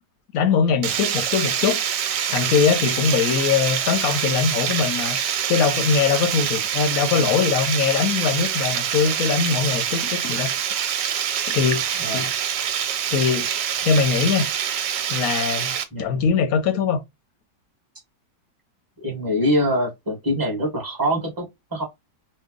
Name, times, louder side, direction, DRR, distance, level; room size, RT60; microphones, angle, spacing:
voice 1, 0.3-1.8 2.3-5.2 5.5-10.5 11.5-11.8 12.1-12.3 13.1-13.5 13.8-14.5 15.1-15.7 16.0-17.0, left 6 dB, 65° left, 0.9 m, -21 dB
Water, 0.8-15.8, right 9 dB, 85° right, 1.3 m, -25 dB
voice 2, 19.0-21.8, equal, 15° right, 1.0 m, -24 dB
3.1 x 2.2 x 3.6 m
omnidirectional pair, 1.9 m